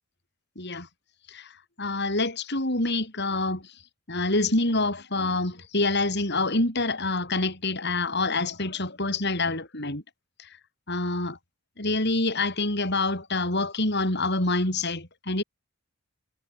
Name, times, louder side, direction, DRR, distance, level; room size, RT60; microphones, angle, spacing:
voice 1, 0.6-0.9 1.3-1.5 1.8-3.7 4.1-10.0 10.4-10.5 10.9-11.4 11.8-15.4, left 2 dB, 50° left, 6.2 m, -26 dB
head